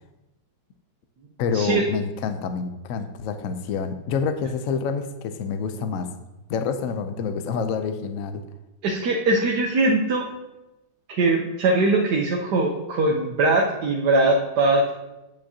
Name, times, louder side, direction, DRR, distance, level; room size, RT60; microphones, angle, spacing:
voice 1, 1.4-6.1 6.5-8.4, left 5 dB, 65° left, 9 dB, 0.9 m, -27 dB
voice 2, 8.8-10.3 11.1-14.8, right 2 dB, 70° right, -1 dB, 1.4 m, -21 dB
9.0 x 8.6 x 2.8 m, 0.97 s
omnidirectional pair, 1.9 m